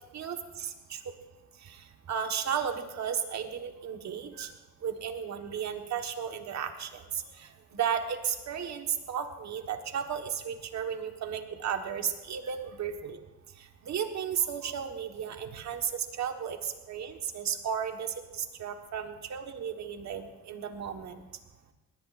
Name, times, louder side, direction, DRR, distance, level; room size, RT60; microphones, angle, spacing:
voice 1, 0.1-1.0 1.6-1.8 2.1-4.5 4.8-13.2 13.8-21.2, right 8 dB, 65° right, 5 dB, 1.4 m, -34 dB
21.0 x 18.0 x 2.5 m, 1.1 s
cardioid pair, 120°, 30 cm